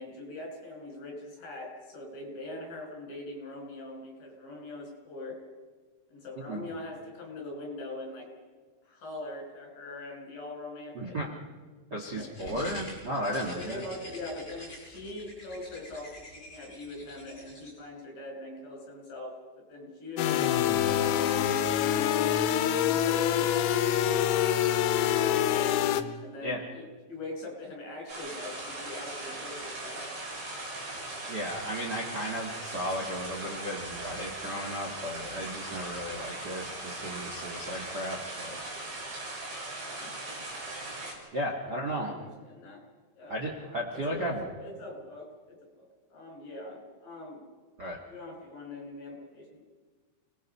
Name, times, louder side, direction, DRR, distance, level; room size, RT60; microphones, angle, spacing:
voice 1, 0.0-5.3 6.1-8.3 8.8-11.2 12.2-12.8 13.3-19.3 19.7-21.3 25.2-25.7 26.2-30.0 39.7-40.1 41.9-42.8 43.2-45.8 46.1-47.4 48.1-49.6, left 2 dB, 50° left, 1 dB, 7.1 m, -42 dB
voice 2, 6.4-6.7 10.9-11.3 11.9-13.8 26.4-26.6 31.3-38.6 41.3-42.1 43.3-44.5 47.8-48.0, equal, 85° right, -1 dB, 0.9 m, -35 dB
sound 1, 12.2-17.7, left 1 dB, 20° left, 8.0 m, -46 dB
sound 2, 20.2-26.0, left 10 dB, 80° left, 3.3 m, -25 dB
sound 3, 28.1-41.1, right 2 dB, 70° right, 8.1 m, -39 dB
29.5 x 20.0 x 5.6 m, 1.4 s
omnidirectional pair, 5.5 m